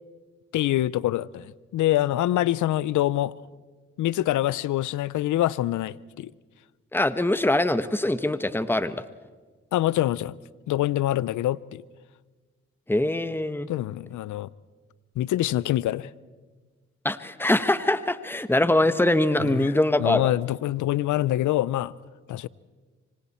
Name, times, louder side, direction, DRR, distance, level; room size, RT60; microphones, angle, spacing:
voice 1, 0.5-3.3 4.0-6.3 9.7-10.3 10.7-11.8 13.7-14.5 15.2-16.1 19.4-19.7 20.0-21.9 22.3-22.5, left 14 dB, 85° left, 0.6 m, -25 dB
voice 2, 6.9-9.0 12.9-13.7 17.0-20.3, left 1 dB, 5° left, 1.3 m, -23 dB
27.0 x 25.5 x 4.4 m
supercardioid pair, 45°, 29 cm